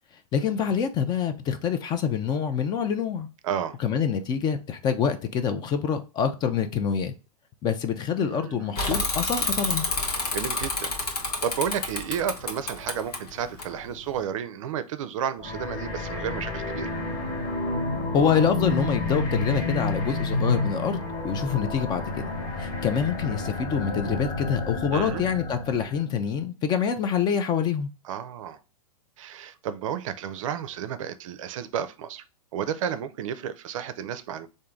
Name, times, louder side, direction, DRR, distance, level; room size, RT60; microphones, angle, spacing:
voice 1, 0.3-3.3 3.8-7.1 7.6-9.9 18.1-22.0 22.6-27.9, left 7 dB, 20° left, 0.4 m, -26 dB
voice 2, 3.4-3.8 8.2-8.7 10.3-10.9 11.4-16.9 24.9-25.2 28.0-28.6 29.2-32.2 32.5-34.5, right 8 dB, 55° right, 0.5 m, -32 dB
Bicycle / Mechanisms, 8.7-14.2, left 3 dB, 90° left, 1.0 m, -29 dB
sound 1, 15.4-26.0, left 2 dB, 40° left, 1.2 m, -30 dB
3.7 x 2.6 x 3.5 m
hypercardioid pair, 110°, 19 cm